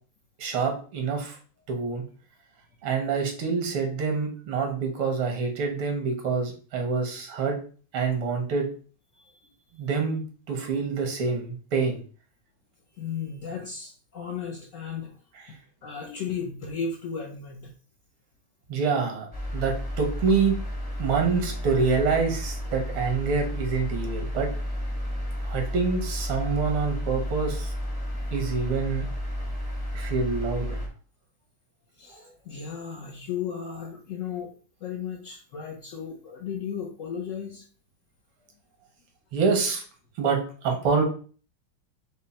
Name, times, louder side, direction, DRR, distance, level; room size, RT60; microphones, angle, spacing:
voice 1, 0.4-1.4 1.7-2.0 2.8-7.6 7.9-8.7 9.7-10.2 10.5-12.0 15.3-15.4 18.7-20.6 21.0-24.5 25.4-27.7 28.3-29.1 29.9-30.8 39.3-39.8 40.2-41.0, right 5 dB, 85° right, 2 dB, 2.0 m, -26 dB
voice 2, 13.0-15.1 15.8-17.7 32.0-34.5 34.8-37.6, left 6 dB, 85° left, -1 dB, 0.6 m, -35 dB
sound 1, 19.3-30.9, equal, 20° left, 0.6 m, -32 dB
5.5 x 2.1 x 4.2 m, 0.40 s
omnidirectional pair, 2.3 m